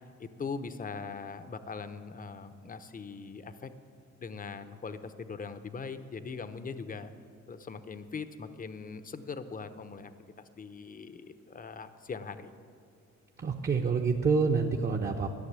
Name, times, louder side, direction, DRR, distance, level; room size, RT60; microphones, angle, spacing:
voice 1, 0.2-3.7 4.2-7.1 7.5-10.1 10.4-12.5, left 5 dB, 30° left, 11 dB, 0.7 m, -41 dB
voice 2, 13.4-15.3, right 4 dB, 30° right, 2 dB, 0.9 m, -27 dB
13.0 x 6.5 x 9.5 m, 2.2 s
cardioid pair, 90°, 30 cm